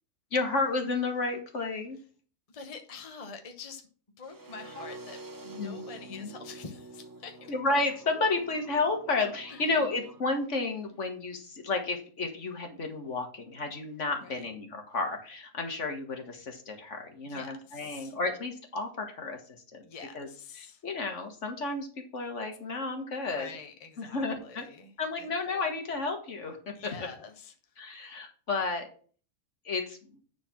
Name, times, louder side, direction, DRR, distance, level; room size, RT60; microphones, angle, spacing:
voice 1, 0.3-2.0 5.6-6.3 7.5-19.4 19.7-19.9 20.1-20.3 20.6-23.5 24.0-24.7 25.0-26.7 27.8-28.9 29.7-30.0, left 3 dB, 55° left, 4 dB, 1.8 m, -32 dB
voice 2, 2.5-3.8 4.2-7.5 9.5-9.8 14.2-14.5 17.2-18.1 19.8-20.8 23.2-24.9 25.2-25.3 26.7-28.0, left 5 dB, 30° left, 5 dB, 0.9 m, -46 dB
sound 1, 4.2-10.2, right 2 dB, 30° right, 0.4 m, -47 dB
10.0 x 4.2 x 5.9 m, 0.43 s
omnidirectional pair, 1.5 m